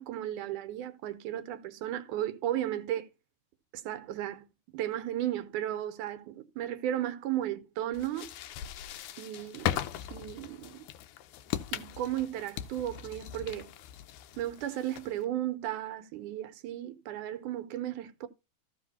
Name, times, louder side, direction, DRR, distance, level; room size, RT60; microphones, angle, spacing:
voice 1, 0.0-3.1 3.7-4.4 4.7-8.3 9.2-9.8 10.1-10.9 11.7-13.7 14.4-18.3, right 12 dB, 85° right, 2.4 m, -35 dB
sound 1, 7.9-15.2, left 11 dB, 80° left, 2.1 m, -39 dB
14.5 x 4.9 x 4.2 m
omnidirectional pair, 3.5 m